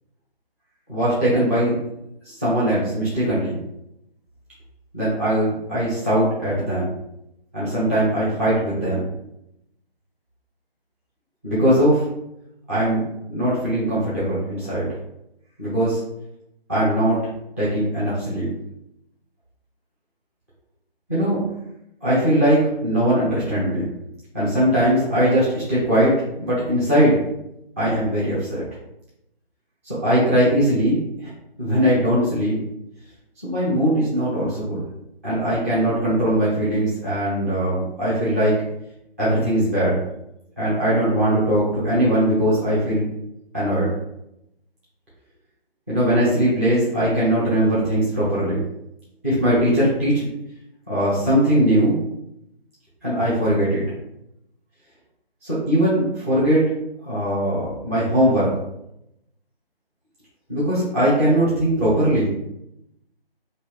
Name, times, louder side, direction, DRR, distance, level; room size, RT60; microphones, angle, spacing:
voice 1, 0.9-1.8 2.2-3.5 4.9-6.9 7.5-9.1 11.4-12.0 12.7-14.9 15.6-16.0 16.7-17.2 17.6-18.5 21.1-21.4 22.0-23.9 24.3-26.1 26.4-27.2 27.8-28.6 29.8-31.3 31.6-32.6 33.4-34.8 35.2-38.6 39.2-40.0 40.6-43.1 43.5-43.9 45.9-48.7 49.2-50.2 50.9-52.0 53.0-54.0 55.4-56.6 57.0-58.5 60.5-62.3, right 1 dB, 15° right, -10 dB, 0.7 m, -20 dB
4.3 x 2.5 x 3.3 m, 0.83 s
figure-of-eight pair, 150°, 30 cm